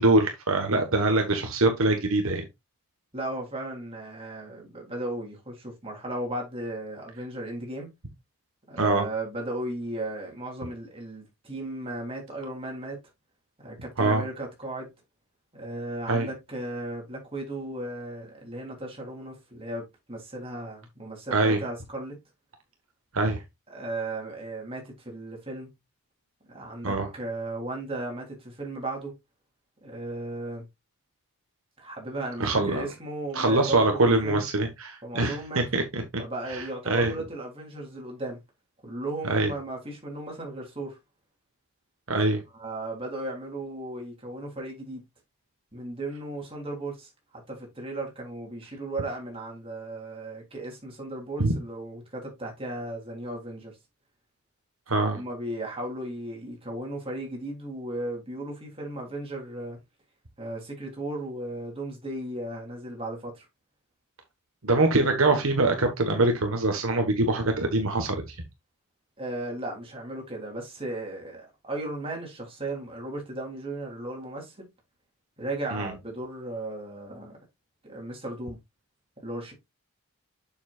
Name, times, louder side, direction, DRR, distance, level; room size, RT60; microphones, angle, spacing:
voice 1, 0.0-2.4 8.8-9.1 14.0-14.2 16.1-16.3 21.3-21.6 23.1-23.4 26.8-27.1 32.4-32.8 33.3-36.2 36.5-37.1 39.3-39.5 42.1-42.4 51.4-51.5 54.9-55.2 64.6-68.3 75.7-75.9, right 2 dB, 65° right, 1.4 m, -24 dB
voice 2, 3.1-7.9 8.7-13.0 13.6-14.9 15.5-22.2 23.7-25.7 26.5-29.1 29.8-30.6 31.8-34.4 35.0-35.6 36.2-38.4 38.8-41.0 42.5-45.0 45.7-53.8 54.9-59.8 60.4-63.5 69.2-74.6 75.4-77.4 77.8-78.6 79.2-79.5, right 1 dB, 25° right, 3.5 m, -36 dB
7.2 x 7.2 x 2.5 m
head